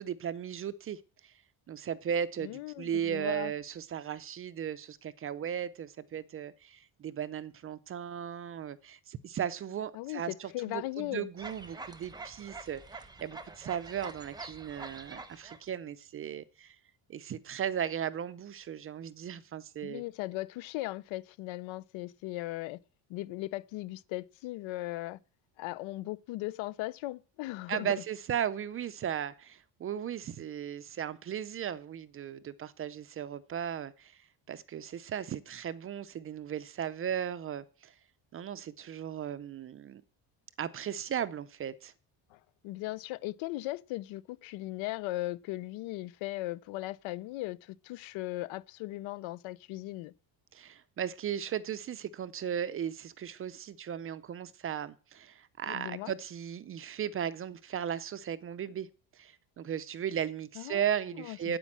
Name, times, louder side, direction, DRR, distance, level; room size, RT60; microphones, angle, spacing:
voice 1, 0.0-1.3 1.7-16.8 17.1-20.0 27.7-34.2 34.5-37.9 38.3-40.0 40.6-41.9 50.5-58.9 59.1-61.6, right 9 dB, 30° right, 0.5 m, -36 dB
voice 2, 2.4-3.5 9.9-11.3 19.8-22.8 23.1-25.2 25.6-27.9 42.3-50.1 55.7-56.1 60.6-60.8 61.2-61.6, left 18 dB, 80° left, 0.7 m, -38 dB
sound 1, 11.4-15.6, right 3 dB, 10° right, 0.8 m, -46 dB
9.7 x 8.4 x 7.3 m
cardioid pair, 165°, 47 cm